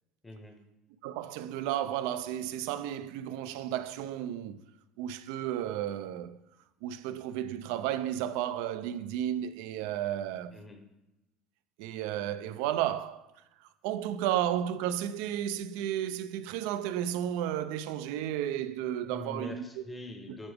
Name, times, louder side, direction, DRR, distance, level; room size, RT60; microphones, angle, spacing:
voice 1, 0.2-0.7 10.5-10.9 19.0-20.5, left 1 dB, 10° left, 0.8 m, -44 dB
voice 2, 1.0-4.6 5.0-6.4 6.8-10.6 11.8-13.3 13.8-19.8, right 11 dB, 80° right, 0.4 m, -33 dB
8.0 x 5.9 x 3.4 m
cardioid pair, 140°, 0 cm